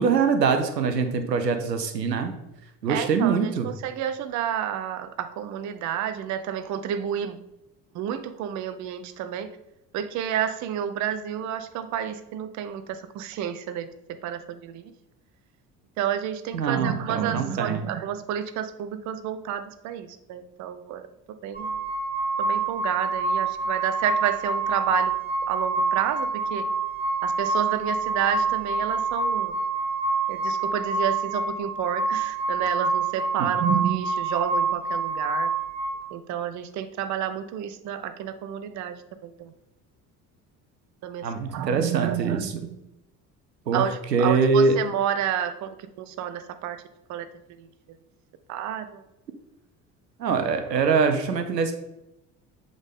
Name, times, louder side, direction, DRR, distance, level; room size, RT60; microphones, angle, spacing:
voice 1, 0.0-2.3 2.8-3.7 16.5-17.8 33.4-33.5 41.2-42.5 43.7-43.8 44.1-44.8 50.2-51.7, right 5 dB, 85° right, 8 dB, 0.7 m, -23 dB
voice 2, 2.9-7.4 7.9-9.5 9.9-13.9 14.2-14.8 16.0-21.0 21.4-21.7 22.4-25.1 25.5-26.7 27.2-29.5 30.3-35.5 36.1-39.0 39.2-39.5 41.0-42.7 43.7-46.8 47.1-47.3 47.6-47.7 48.5-49.0, right 10 dB, 35° right, 10 dB, 0.6 m, -30 dB
sound 1, 21.5-36.0, right 4 dB, 20° left, 1.8 m, -26 dB
7.9 x 3.9 x 3.6 m, 0.90 s
figure-of-eight pair, 60°, 48 cm